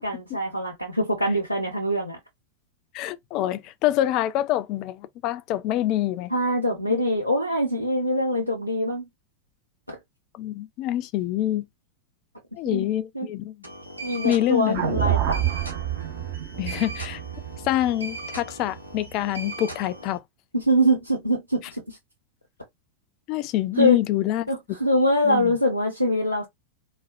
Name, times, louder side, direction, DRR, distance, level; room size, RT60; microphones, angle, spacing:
voice 1, 0.0-2.2 6.3-9.1 9.9-10.0 12.7-12.9 13.1-13.3 14.0-15.4 20.5-22.0 23.8-24.0 24.5-26.5, equal, 85° left, 0.9 m, -24 dB
voice 2, 2.9-6.3 10.4-11.7 12.6-13.5 14.2-14.8 16.6-17.2 17.6-20.2 23.3-24.5 25.2-25.5, left 13 dB, 40° left, 0.5 m, -26 dB
sound 1, 13.6-20.2, right 2 dB, 85° right, 1.2 m, -39 dB
sound 2, 14.7-19.0, right 12 dB, 45° right, 1.0 m, -28 dB
4.2 x 2.3 x 2.4 m
figure-of-eight pair, 90°, 0 cm